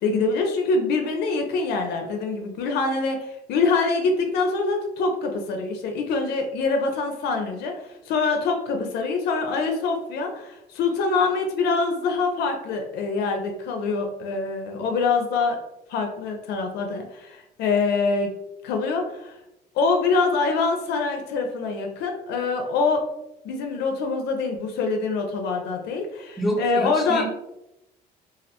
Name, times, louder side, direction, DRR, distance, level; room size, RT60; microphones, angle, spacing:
voice 1, 0.0-15.6 15.9-18.3 18.6-19.4 19.7-23.0 23.4-27.3, left 4 dB, 80° left, 3 dB, 0.4 m, -25 dB
voice 2, 26.4-27.4, equal, ahead, -2 dB, 0.5 m, -27 dB
2.3 x 2.1 x 2.7 m, 0.88 s
cardioid pair, 110°, 17 cm